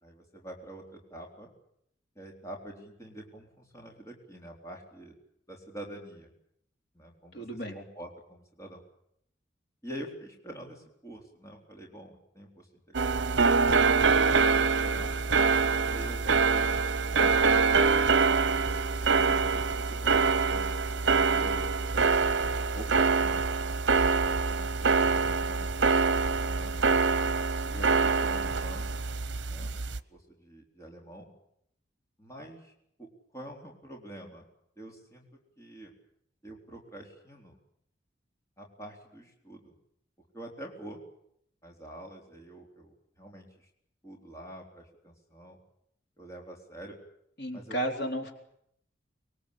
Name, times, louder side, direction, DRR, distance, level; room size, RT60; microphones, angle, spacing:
voice 1, 0.0-1.5 2.2-5.1 5.5-6.3 6.9-8.8 9.8-13.6 14.3-15.2 15.8-18.2 19.1-21.8 22.7-23.5 24.2-26.8 27.6-29.0 29.5-29.7 30.1-31.3 32.2-32.7 33.0-34.5 34.8-35.2 35.6-36.0 36.4-37.6 38.6-39.7 40.3-41.0 41.6-43.7 44.0-45.6 46.2-46.9 47.5-47.8, right 1 dB, 15° left, 0 dB, 3.9 m, -46 dB
voice 2, 7.3-7.8 47.4-48.3, right 1 dB, 60° left, 3 dB, 3.9 m, -33 dB
sound 1, 12.9-30.0, right 4 dB, 75° right, 0.9 m, -25 dB
24.5 x 22.0 x 8.6 m, 0.74 s
head